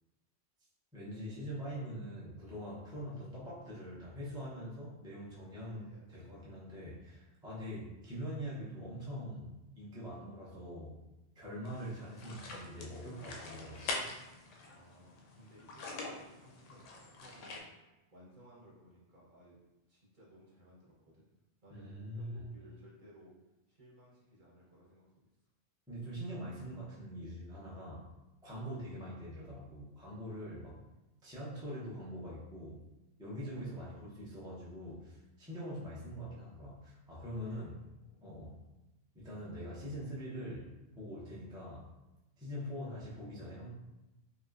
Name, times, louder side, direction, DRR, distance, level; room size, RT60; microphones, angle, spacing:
voice 1, 0.9-11.0 11.3-14.1 21.7-22.4 25.9-28.1 28.4-30.8 31.2-32.9 33.2-37.7 38.2-38.6 39.1-41.9 42.4-43.7, equal, 5° right, -8 dB, 0.5 m, -43 dB
voice 2, 5.4-6.3 6.5-6.7 14.7-17.7 18.1-19.6 19.9-21.2 21.6-23.3 23.7-25.2 33.4-34.0 34.8-35.0 37.3-37.6 38.0-38.4, equal, 45° right, -6 dB, 0.9 m, -59 dB
sound 1, 11.6-17.6, left 3 dB, 90° left, 0.9 m, -44 dB
3.0 x 2.8 x 2.4 m, 1.0 s
omnidirectional pair, 1.2 m